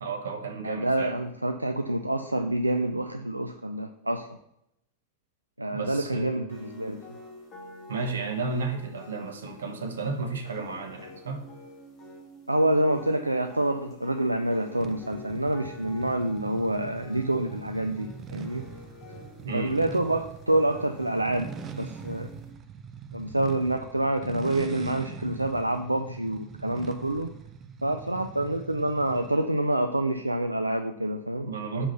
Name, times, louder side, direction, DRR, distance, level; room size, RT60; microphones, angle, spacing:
voice 1, 0.0-1.1 5.7-6.6 7.9-11.4 19.4-19.8 31.4-31.9, right 4 dB, 65° right, 5 dB, 1.1 m, -33 dB
voice 2, 0.6-4.4 5.6-7.0 12.5-18.6 19.5-22.3 23.1-27.3 27.8-31.5, right 1 dB, 85° right, 8 dB, 0.3 m, -27 dB
sound 1, 6.5-22.5, left 1 dB, 30° left, 2.4 m, -48 dB
sound 2, 14.8-29.5, right 6 dB, 25° right, 0.6 m, -42 dB
5.7 x 5.1 x 5.6 m, 0.78 s
figure-of-eight pair, 90°, 0 cm